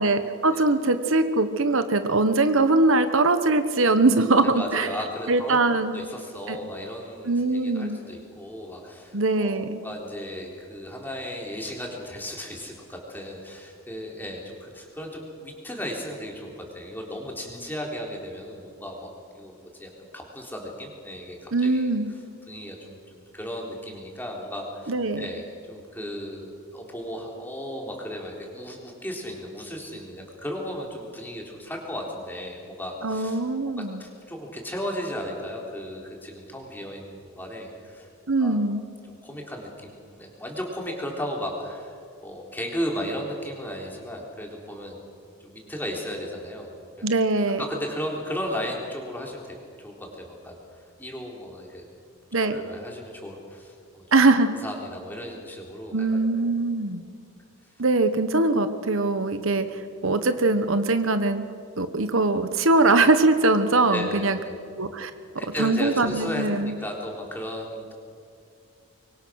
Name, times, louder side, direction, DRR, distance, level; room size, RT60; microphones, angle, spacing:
voice 1, 0.0-4.9 5.3-5.9 6.5-6.6 7.3-8.0 9.1-9.8 21.5-22.1 24.9-25.3 33.0-34.0 38.3-38.8 47.0-47.6 52.3-52.6 54.1-54.5 55.9-57.0 57.8-61.4 61.8-64.4 64.8-65.1 65.6-66.7, right 2 dB, 65° right, 9 dB, 1.2 m, -22 dB
voice 2, 4.4-16.5 16.7-21.9 22.5-33.4 33.7-38.1 38.4-38.6 39.1-41.9 42.2-45.0 45.4-46.7 47.0-47.1 47.6-49.6 49.8-51.9 52.4-54.0 54.6-56.1 56.4-56.5 63.9-64.5 65.4-67.9, equal, 10° left, -1 dB, 3.7 m, -35 dB
24.5 x 23.5 x 6.4 m, 2.4 s
head